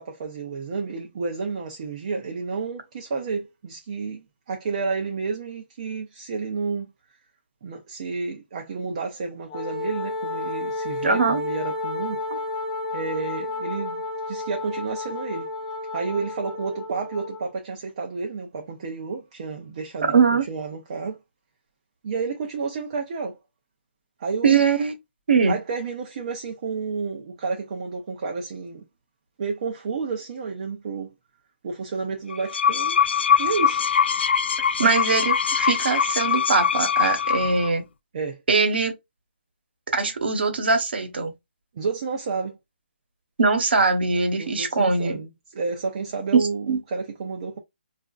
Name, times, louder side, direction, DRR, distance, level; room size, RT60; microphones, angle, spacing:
voice 1, 0.0-6.9 7.6-12.2 12.9-15.5 15.9-20.2 20.5-21.2 22.0-23.4 24.2-24.6 25.5-28.9 29.4-31.1 31.6-33.0 33.4-33.9 38.1-38.4 41.7-42.6 44.4-47.6, right 4 dB, 35° right, 0.5 m, -31 dB
Wind instrument woodwind instrument, 9.5-17.5, left 2 dB, 30° left, 1.1 m, -31 dB
voice 2, 11.0-11.4 12.3-12.4 20.0-20.5 24.4-24.9 25.3-25.6 34.8-37.8 38.5-38.9 39.9-41.3 43.4-45.2 46.3-46.8, right 4 dB, 70° right, 1.1 m, -21 dB
sound 1, 32.3-37.7, left 7 dB, 75° left, 0.3 m, -22 dB
4.7 x 2.5 x 2.3 m
hypercardioid pair, 170°, 6 cm